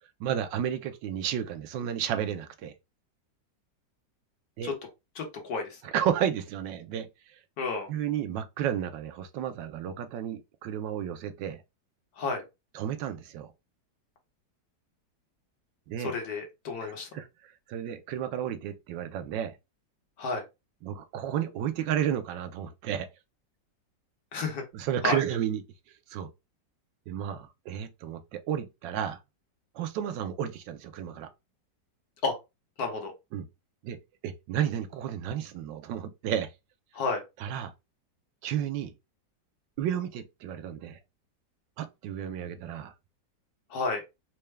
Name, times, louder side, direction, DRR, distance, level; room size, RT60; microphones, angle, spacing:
voice 1, 0.2-2.7 4.6-4.7 5.8-7.1 7.9-11.6 12.7-13.5 15.9-16.1 16.8-19.5 20.8-23.1 24.7-25.6 26.1-26.3 27.1-29.2 29.7-31.3 33.3-33.5 33.8-34.0 34.2-36.5 37.4-37.7 38.4-38.9 39.8-41.0 41.8-42.9, right 9 dB, 90° right, 1.3 m, -32 dB
voice 2, 5.2-5.8 7.6-7.9 12.2-12.4 16.0-17.1 20.2-20.4 24.3-24.6 25.0-25.2 32.2-32.4 32.8-33.1 36.9-37.2 43.7-44.0, left 4 dB, 60° left, 1.5 m, -31 dB
4.4 x 2.2 x 3.2 m
omnidirectional pair, 1.9 m